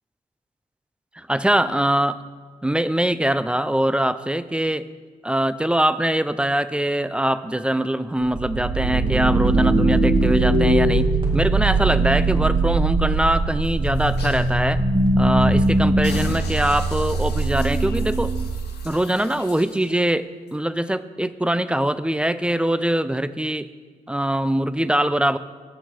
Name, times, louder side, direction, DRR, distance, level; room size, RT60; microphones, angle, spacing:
voice 1, 1.2-2.1 2.6-4.9 5.2-14.8 15.2-18.3 18.8-23.7 24.1-25.4, right 1 dB, 5° right, 15 dB, 0.4 m, -22 dB
sound 1, 8.2-18.8, right 2 dB, 30° right, 2.4 m, -21 dB
sound 2, 13.6-14.5 15.0-15.1 15.4-15.7 16.0-19.9 20.5-20.6, left 4 dB, 65° left, 1.3 m, -39 dB
8.1 x 6.1 x 5.5 m, 1.5 s
hypercardioid pair, 45°, 18 cm